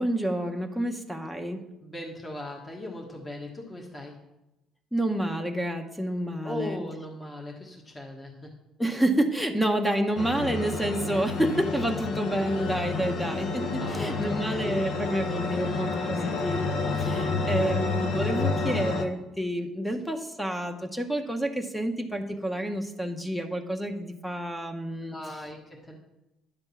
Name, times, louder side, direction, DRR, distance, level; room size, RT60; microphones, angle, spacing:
voice 1, 0.0-1.6 4.9-6.8 8.8-25.1, right 1 dB, 5° left, 6 dB, 0.8 m, -29 dB
voice 2, 1.8-4.2 6.4-8.5 13.8-15.0 25.1-25.9, left 1 dB, 20° left, -1 dB, 1.4 m, -39 dB
sound 1, 10.2-19.1, left 4 dB, 60° left, 0.9 m, -29 dB
10.5 x 3.5 x 7.0 m, 0.94 s
cardioid pair, 110°, 0 cm